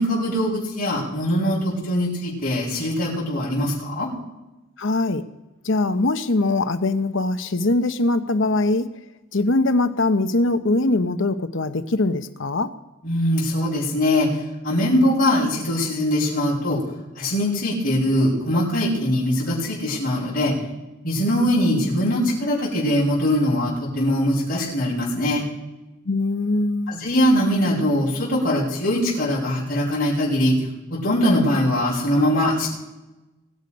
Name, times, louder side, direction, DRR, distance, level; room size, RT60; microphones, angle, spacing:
voice 1, 0.0-4.1 13.0-14.3 14.6-16.8 17.2-20.5 21.0-25.4 26.9-30.5 31.0-32.7, left 1 dB, 40° left, -7 dB, 6.2 m, -21 dB
voice 2, 4.8-5.2 5.6-8.9 9.3-12.7 26.1-26.9, left 2 dB, 60° left, 10 dB, 0.8 m, -22 dB
23.0 x 8.4 x 5.3 m, 1.0 s
head